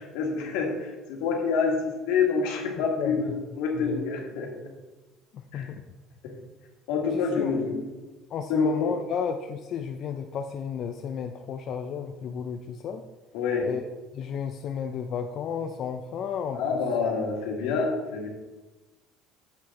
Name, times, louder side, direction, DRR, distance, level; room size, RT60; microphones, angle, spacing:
voice 1, 0.1-4.7 5.5-5.7 6.2-6.3 6.9-7.8 8.5-8.9 13.3-13.7 16.5-18.3, left 5 dB, 85° left, 0 dB, 1.9 m, -27 dB
voice 2, 5.3-5.8 7.0-7.6 8.3-13.0 13.6-13.8 14.1-16.8 17.6-17.8, left 7 dB, 50° left, 6 dB, 0.5 m, -33 dB
8.0 x 6.2 x 4.2 m, 1.2 s
cardioid pair, 120°, 0 cm